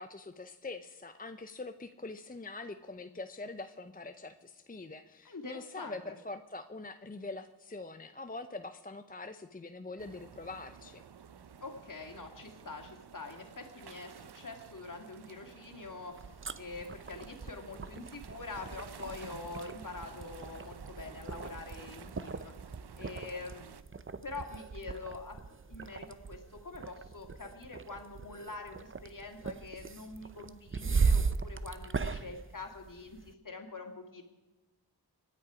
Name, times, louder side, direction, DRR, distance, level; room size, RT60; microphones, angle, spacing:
voice 1, 0.0-11.0, left 3 dB, 20° left, 8 dB, 0.7 m, -44 dB
voice 2, 5.2-6.2 11.6-22.5 23.0-23.8 24.2-34.2, left 3 dB, 50° left, 3 dB, 2.5 m, -45 dB
sound 1, 10.0-23.8, right 7 dB, 75° right, 0.7 m, -52 dB
sound 2, 16.1-33.3, right 5 dB, 30° right, 0.6 m, -37 dB
26.0 x 10.0 x 5.0 m, 1.1 s
wide cardioid pair, 80°, 39 cm